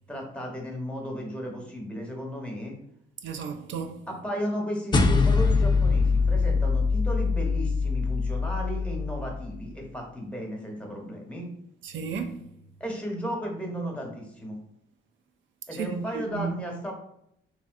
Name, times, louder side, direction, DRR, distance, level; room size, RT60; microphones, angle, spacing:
voice 1, 0.1-2.7 4.1-11.5 12.8-14.6 15.7-16.9, equal, 5° left, 0.8 m, -34 dB
voice 2, 3.2-4.0 11.8-12.4 15.7-16.5, right 6 dB, 75° right, 0.4 m, -33 dB
sound 1, 4.9-9.6, left 4 dB, 25° left, 0.3 m, -23 dB
3.2 x 2.6 x 2.4 m
cardioid pair, 90°, 20 cm